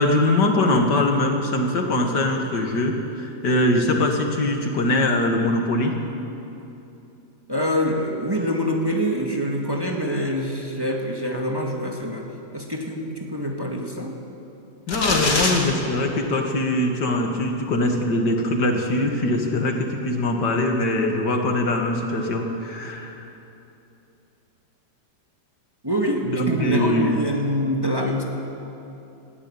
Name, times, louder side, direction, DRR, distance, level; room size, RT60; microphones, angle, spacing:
voice 1, 0.0-5.9 14.9-23.3 26.2-27.1, left 1 dB, 75° left, 3 dB, 2.5 m, -22 dB
voice 2, 7.5-12.3 12.5-14.1 25.8-28.2, equal, 15° right, 0 dB, 1.7 m, -25 dB
sound 1, 14.9-15.6, left 2 dB, 55° left, 2.9 m, -22 dB
19.5 x 15.0 x 8.8 m, 2.8 s
omnidirectional pair, 1.9 m